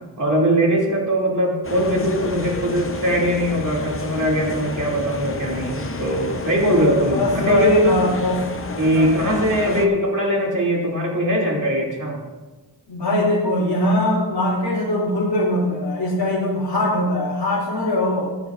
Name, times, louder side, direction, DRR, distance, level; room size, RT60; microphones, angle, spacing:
voice 1, 0.2-8.1 8.8-12.2, equal, 45° right, -2 dB, 2.5 m, -21 dB
sound 1, 1.6-9.9, left 3 dB, 30° left, 0.8 m, -30 dB
voice 2, 7.1-8.4 8.9-9.4 9.7-9.9 12.9-18.3, left 1 dB, 70° left, -8 dB, 2.7 m, -21 dB
15.0 x 9.6 x 2.5 m, 1.2 s
wide cardioid pair, 125°, 43 cm